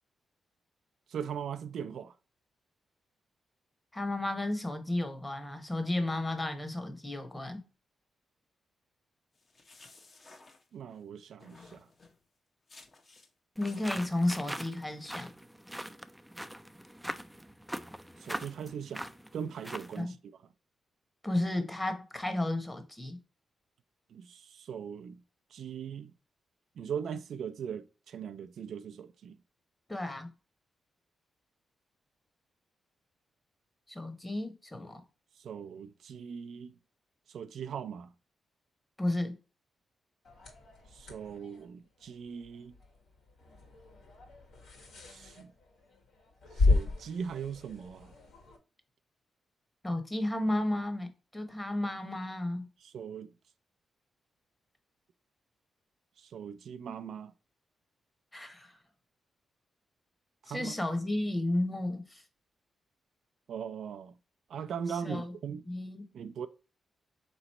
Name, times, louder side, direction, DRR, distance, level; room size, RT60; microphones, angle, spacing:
voice 1, 1.1-2.1 10.7-11.8 18.2-19.1 19.3-20.2 24.1-25.2 25.5-26.1 26.8-29.3 35.4-36.7 37.3-38.1 40.9-42.7 45.1-45.5 46.6-48.1 52.8-53.3 56.2-57.3 60.4-60.7 63.5-64.1 64.5-65.6 66.1-66.5, right 7 dB, 75° right, 0.4 m, -40 dB
voice 2, 3.9-7.6 13.6-15.3 20.0-20.1 21.2-23.2 29.9-30.3 33.9-35.0 39.0-39.4 49.8-52.7 58.3-58.8 60.5-62.2 64.9-65.3 65.7-66.0, left 1 dB, 15° left, 1.0 m, -33 dB
sound 1, 9.4-11.0 11.4-12.2 12.7-13.3 13.6-14.4, left 3 dB, 40° left, 0.9 m, -56 dB
sound 2, 13.6-20.0, equal, 5° right, 0.4 m, -42 dB
sound 3, 40.2-48.6, left 3 dB, 80° left, 1.6 m, -34 dB
4.0 x 3.1 x 4.1 m
cardioid pair, 75°, 0 cm